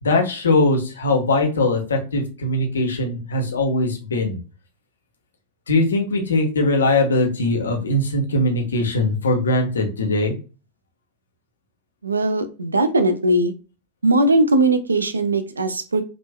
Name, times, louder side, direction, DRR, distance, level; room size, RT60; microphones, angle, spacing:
voice 1, 0.0-4.4 5.7-10.3, left 2 dB, 70° left, 3 dB, 1.2 m, -20 dB
voice 2, 12.0-13.5 14.0-16.0, right 2 dB, 75° right, 10 dB, 0.6 m, -19 dB
5.1 x 3.2 x 2.2 m, 0.33 s
figure-of-eight pair, 90°, 0 cm